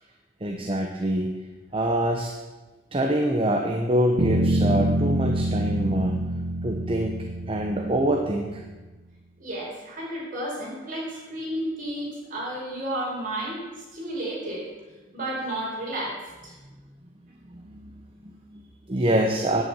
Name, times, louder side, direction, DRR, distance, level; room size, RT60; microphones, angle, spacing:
voice 1, 0.4-1.3 1.7-2.3 2.9-6.2 6.6-7.2 7.5-8.6 17.5-17.9 18.2-19.6, right 1 dB, 30° right, 2 dB, 0.9 m, -25 dB
sound 1, 4.2-8.2, right 1 dB, 70° right, 1.6 m, -25 dB
voice 2, 9.4-13.6 13.9-14.6 15.1-16.5, right 1 dB, 45° right, -4 dB, 4.9 m, -32 dB
9.8 x 8.3 x 7.4 m, 1.2 s
head